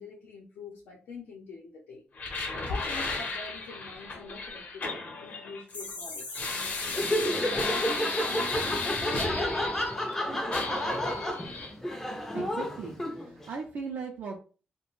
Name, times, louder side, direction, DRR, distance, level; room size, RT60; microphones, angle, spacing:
voice 1, 0.0-2.0 2.7-8.6, left 4 dB, 90° left, -4 dB, 0.6 m, -46 dB
sound 1, 2.2-10.2 10.5-11.7, left 3 dB, 50° left, 0.7 m, -34 dB
Laughter, 6.9-13.5, equal, 10° left, 0.4 m, -31 dB
voice 2, 12.3-14.4, right 5 dB, 65° right, 0 dB, 0.4 m, -39 dB
2.4 x 2.1 x 3.0 m, 0.36 s
wide cardioid pair, 140°, 3 cm